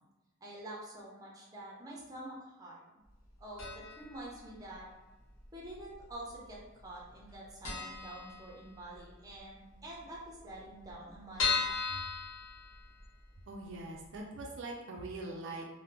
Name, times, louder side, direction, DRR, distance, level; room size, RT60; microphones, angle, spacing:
voice 1, 0.4-2.8 3.4-4.9 5.5-6.6 6.8-11.8, right 1 dB, 15° right, -4 dB, 0.6 m, -47 dB
sound 1, 3.6-4.1 4.4-4.5 5.4-6.1 6.4-6.5 6.8-6.9 7.3-7.4 7.6-9.0 9.3-9.4 9.7-9.8 10.0-10.1 10.6-13.2 13.7-13.8 14.1-14.2, left 5 dB, 80° left, 0.9 m, -36 dB
voice 2, 13.5-15.7, right 2 dB, 60° right, 0 dB, 0.4 m, -42 dB
3.3 x 2.1 x 2.9 m, 1.0 s
head